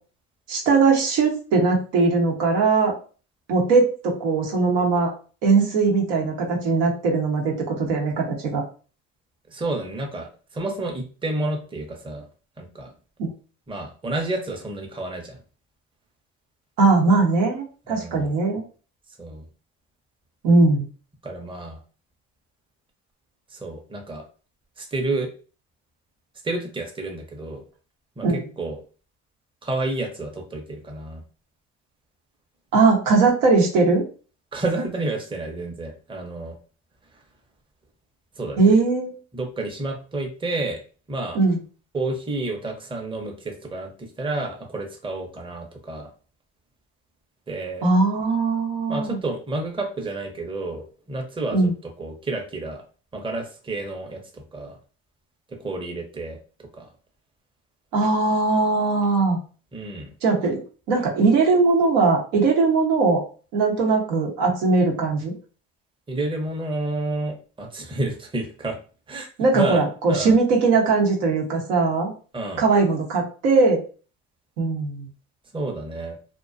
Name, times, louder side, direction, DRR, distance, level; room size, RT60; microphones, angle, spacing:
voice 1, 0.5-2.9 3.5-5.1 5.4-8.6 13.2-13.3 16.8-18.6 20.4-20.8 28.2-28.3 32.7-34.0 38.6-39.2 41.3-41.6 47.8-49.2 51.5-51.7 57.9-59.4 60.2-60.6 60.9-63.2 63.5-65.3 69.4-72.1 72.6-73.8 74.6-75.1, right 3 dB, 80° right, 0 dB, 0.9 m, -20 dB
voice 2, 9.5-12.2 12.6-12.9 13.7-15.4 17.9-18.3 19.2-19.5 21.2-21.8 23.5-24.2 24.8-25.3 26.4-27.6 28.2-28.8 29.6-31.2 34.5-36.6 38.4-38.7 39.3-40.8 41.1-41.4 41.9-46.1 47.5-47.9 48.9-51.7 52.0-52.8 53.1-54.8 55.5-56.4 56.7-56.9 59.7-60.1 66.1-68.8 69.1-69.3 69.5-69.8 70.1-70.3 72.3-72.6 75.5-76.2, right 2 dB, 15° right, 2 dB, 0.7 m, -30 dB
2.4 x 2.2 x 2.5 m, 0.37 s
hypercardioid pair, 65°, 35 cm